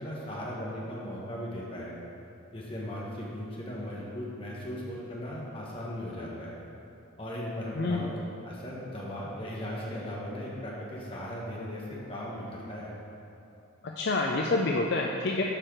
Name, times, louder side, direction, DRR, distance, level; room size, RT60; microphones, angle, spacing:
voice 1, 0.0-1.9 2.5-6.6 7.2-8.1 8.4-12.9, equal, 25° left, -5 dB, 1.4 m, -37 dB
voice 2, 7.8-8.1 13.8-15.4, left 2 dB, 50° left, 0 dB, 0.4 m, -27 dB
7.6 x 4.7 x 6.4 m, 2.8 s
head